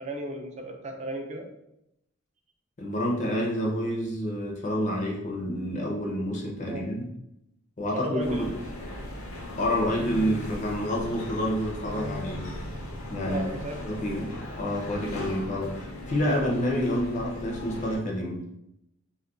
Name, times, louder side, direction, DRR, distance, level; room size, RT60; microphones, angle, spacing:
voice 1, 0.0-1.5 6.6-6.9 7.9-8.5 13.2-14.2, right 1 dB, 30° right, 3 dB, 0.4 m, -35 dB
voice 2, 2.8-7.1 7.8-8.5 9.6-12.5 13.1-13.5 13.8-18.4, equal, 35° left, -1 dB, 0.5 m, -28 dB
sound 1, 8.2-18.0, left 1 dB, 85° left, 0.6 m, -38 dB
2.3 x 2.1 x 3.7 m, 0.82 s
head